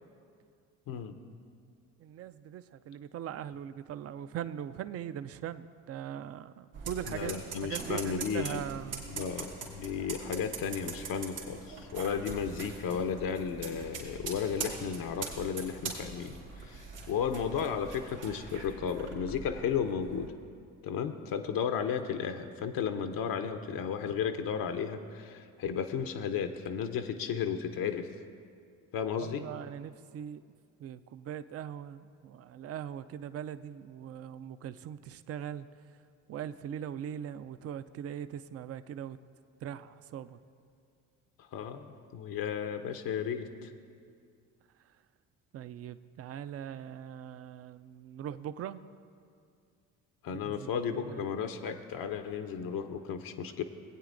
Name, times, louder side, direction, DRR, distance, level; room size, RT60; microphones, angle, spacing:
voice 1, 2.0-9.0 29.2-30.4 30.8-35.7 36.3-39.2 39.6-40.4 45.5-48.8 50.3-51.3, right 9 dB, 40° right, 13 dB, 0.4 m, -41 dB
sound 1, 6.7-20.3, right 4 dB, 90° right, 2.0 m, -43 dB
voice 2, 7.0-8.6 9.1-20.3 20.8-28.1 28.9-29.4 41.5-41.9 42.1-43.7 50.2-53.6, left 7 dB, 60° left, 8 dB, 0.7 m, -34 dB
18.5 x 8.6 x 2.6 m, 2.3 s
supercardioid pair, 65°, 39 cm